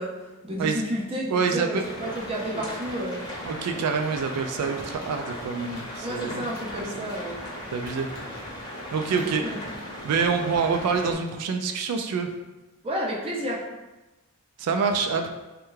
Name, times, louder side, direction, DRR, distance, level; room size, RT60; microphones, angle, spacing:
voice 1, 0.0-3.2 6.0-7.4 9.1-9.6 12.8-13.6, equal, 25° right, -2 dB, 0.4 m, -31 dB
voice 2, 1.3-2.1 2.5-2.6 3.4-6.5 6.8-7.1 7.7-8.1 8.9-9.4 10.0-12.3 14.6-15.3, right 5 dB, 90° right, 5 dB, 0.3 m, -26 dB
sound 1, 1.8-11.1, left 1 dB, 20° left, 0.7 m, -37 dB
3.3 x 2.2 x 3.1 m, 1.1 s
head